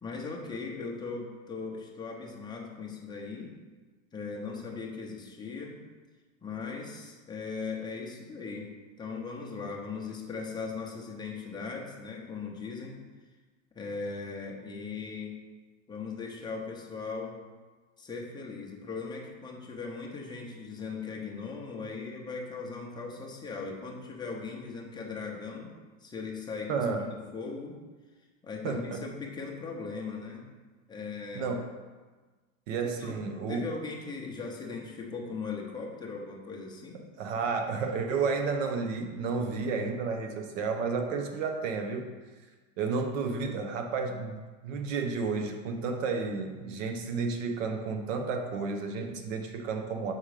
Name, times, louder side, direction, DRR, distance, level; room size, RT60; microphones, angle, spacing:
voice 1, 0.0-3.5 4.1-5.8 6.4-13.0 13.7-15.4 15.9-17.4 18.0-25.7 26.0-26.9 27.1-27.8 28.4-30.5 30.9-31.5 33.0-33.2 33.5-37.0, left 4 dB, 10° left, -1 dB, 0.7 m, -39 dB
voice 2, 26.7-27.1 28.6-29.0 31.3-31.6 32.7-33.7 37.2-42.1 42.8-50.1, right 4 dB, 70° right, 4 dB, 1.0 m, -31 dB
6.1 x 3.8 x 4.9 m, 1.3 s
supercardioid pair, 140°, 40 cm